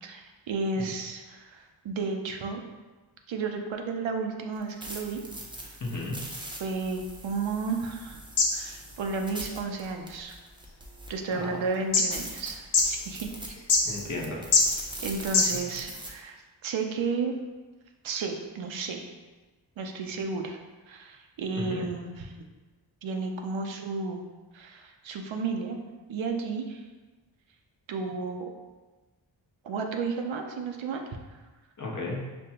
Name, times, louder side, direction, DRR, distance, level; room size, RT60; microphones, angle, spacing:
voice 1, 0.0-2.6 3.3-5.2 5.6-5.8 6.6-8.2 8.5-10.3 11.1-13.6 15.0-17.4 18.0-19.1 19.8-20.6 20.9-22.3 23.0-24.2 24.5-25.8 26.1-26.8 27.9-28.4 29.6-31.0, right 4 dB, 80° right, 4 dB, 0.6 m, -33 dB
sound 1, 4.5-11.3 11.7-11.8 12.1-16.1, right 1 dB, 10° right, 0.6 m, -42 dB
voice 2, 5.8-6.2 11.3-11.6 13.8-14.4 21.6-21.9 31.8-32.2, left 2 dB, 40° left, -2 dB, 0.8 m, -34 dB
sound 2, 6.7-15.9, left 3 dB, 85° left, 0.7 m, -30 dB
5.2 x 2.2 x 2.8 m, 1.2 s
wide cardioid pair, 75°, 45 cm